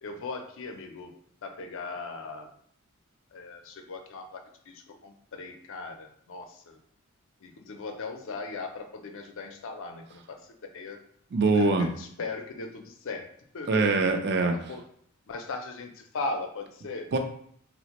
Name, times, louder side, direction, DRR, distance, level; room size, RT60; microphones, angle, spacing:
voice 1, 0.0-1.1 1.4-2.5 3.3-6.8 7.4-10.5 10.7-11.0 11.6-13.3 13.5-13.9 14.7-14.8 15.3-17.1, left 3 dB, 65° left, 5 dB, 0.5 m, -38 dB
voice 2, 11.3-11.9 13.7-14.5 17.1-17.2, right 3 dB, 55° right, 4 dB, 0.5 m, -23 dB
4.1 x 2.0 x 2.9 m, 0.64 s
head